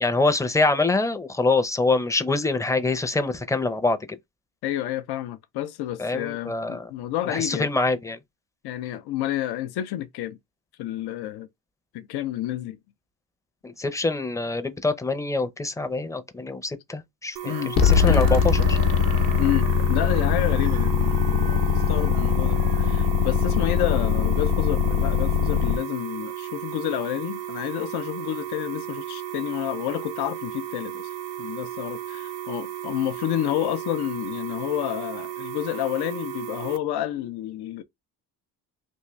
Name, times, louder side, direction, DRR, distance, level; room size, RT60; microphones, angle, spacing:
voice 1, 0.0-4.2 6.0-6.9 7.3-8.2 13.6-17.5 17.8-18.8, left 3 dB, 10° left, 0.5 m, -25 dB
voice 2, 4.6-7.7 8.6-10.4 10.8-11.5 11.9-12.8 17.4-17.8 18.1-18.2 19.4-31.1 31.4-37.8, left 13 dB, 80° left, 0.6 m, -29 dB
sound 1, 17.4-36.8, right 12 dB, 70° right, 0.6 m, -35 dB
Chicken rooster, 17.4-23.4, right 6 dB, 90° right, 1.1 m, -41 dB
sound 2, 17.8-25.8, left 7 dB, 55° left, 0.9 m, -21 dB
3.6 x 2.5 x 3.0 m
cardioid pair, 90°, 39 cm